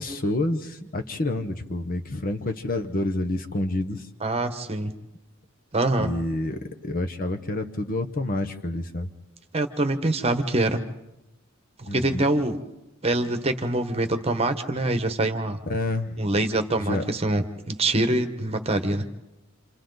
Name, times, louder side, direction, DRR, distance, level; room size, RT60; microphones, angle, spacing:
voice 1, 0.0-4.0 6.0-9.1 11.9-12.3 15.7-16.2 16.8-17.0, left 1 dB, 45° left, 6 dB, 1.1 m, -28 dB
voice 2, 4.2-4.9 5.7-6.1 9.5-10.8 11.8-12.6 13.0-15.6 16.2-19.0, right 2 dB, 30° right, 8 dB, 1.2 m, -24 dB
29.0 x 27.5 x 4.0 m, 0.93 s
head